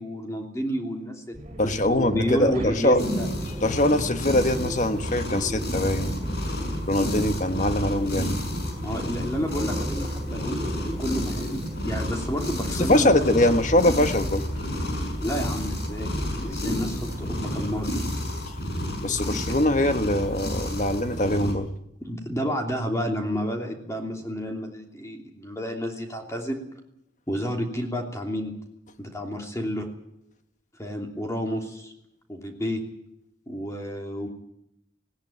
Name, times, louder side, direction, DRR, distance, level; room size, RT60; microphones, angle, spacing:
voice 1, 0.0-1.4 1.8-3.3 8.8-13.1 15.2-16.1 16.4-17.9 22.0-26.6 27.3-28.5 29.0-29.9 30.8-31.9 32.3-32.8 33.5-34.3, equal, 15° left, 2 dB, 3.1 m, -30 dB
sound 1, 1.3-18.0, equal, 35° right, 6.2 m, -41 dB
voice 2, 1.6-3.0 3.6-6.2 6.9-8.4 12.8-14.5 19.0-21.7, left 1 dB, 45° left, 9 dB, 1.4 m, -22 dB
sound 2, 2.0-16.3, equal, 20° right, 2.5 m, -40 dB
sound 3, 3.0-21.5, left 1 dB, 60° left, 6.3 m, -31 dB
19.0 x 18.0 x 9.0 m, 0.79 s
head